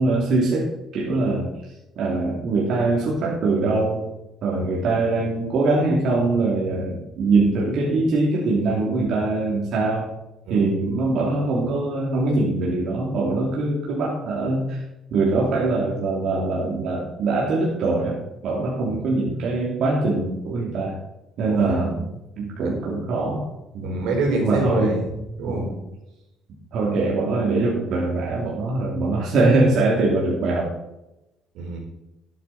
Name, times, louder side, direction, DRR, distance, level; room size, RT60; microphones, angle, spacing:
voice 1, 0.0-1.5 2.0-4.1 4.4-10.1 10.5-14.8 15.1-18.2 18.4-21.0 21.4-22.0 22.4-23.5 23.7-24.0 24.4-25.0 25.5-25.7 26.7-30.7, right 3 dB, 65° right, -4 dB, 2.9 m, -22 dB
voice 2, 21.5-21.9 22.6-22.7 23.8-25.8 31.5-31.8, right 2 dB, 90° right, 0 dB, 4.4 m, -27 dB
12.0 x 9.5 x 4.2 m, 0.93 s
cardioid pair, 125°, 0 cm